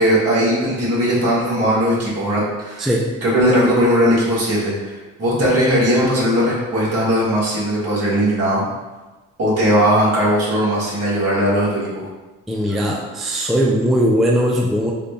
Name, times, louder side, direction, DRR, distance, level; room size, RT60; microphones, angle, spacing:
voice 1, 0.0-2.9 3.2-8.6 9.4-12.1, equal, 55° right, -7 dB, 1.5 m, -18 dB
voice 2, 2.8-3.1 12.5-14.9, equal, ahead, -1 dB, 0.3 m, -19 dB
3.7 x 2.2 x 3.3 m, 1.2 s
cardioid pair, 90°, 30 cm